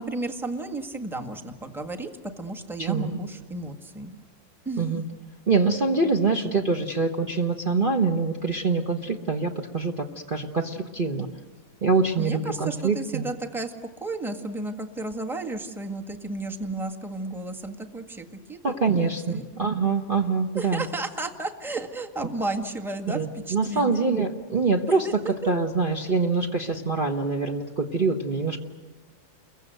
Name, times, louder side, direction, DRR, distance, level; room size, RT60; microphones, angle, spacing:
voice 1, 0.0-4.1 4.6-4.9 6.0-6.1 12.2-19.5 20.5-24.1 24.9-25.1, right 2 dB, ahead, 3 dB, 1.5 m, -33 dB
voice 2, 5.5-11.3 11.8-13.3 18.6-20.9 23.1-25.1 25.4-28.6, right 4 dB, 30° right, 1 dB, 1.3 m, -25 dB
30.0 x 23.0 x 8.0 m, 1.4 s
omnidirectional pair, 2.0 m